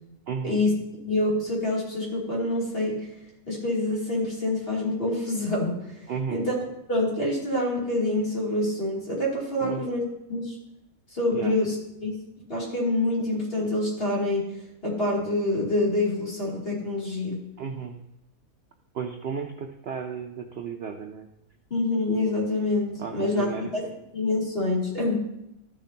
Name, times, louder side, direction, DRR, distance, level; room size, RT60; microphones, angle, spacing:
voice 1, 0.3-0.6 6.1-6.4 9.6-9.9 11.3-11.6 17.6-18.0 18.9-21.3 23.0-23.7, right 6 dB, 55° right, 3 dB, 0.7 m, -34 dB
voice 2, 1.0-3.1 3.5-5.8 6.3-6.5 6.9-10.6 11.1-12.1 12.5-14.5 14.8-17.4 21.7-23.8 24.1-25.2, left 2 dB, 40° left, -5 dB, 3.0 m, -26 dB
13.5 x 7.1 x 2.8 m, 0.86 s
omnidirectional pair, 1.6 m